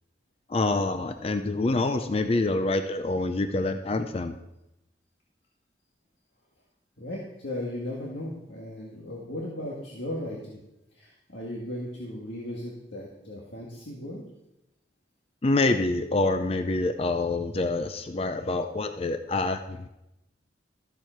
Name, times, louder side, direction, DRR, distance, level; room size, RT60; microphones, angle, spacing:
voice 1, 0.5-4.4 15.4-19.9, left 2 dB, 35° left, 8 dB, 0.5 m, -26 dB
voice 2, 7.0-10.6 10.9-14.2, left 1 dB, 85° left, -3 dB, 1.9 m, -36 dB
13.5 x 7.5 x 4.5 m, 0.90 s
head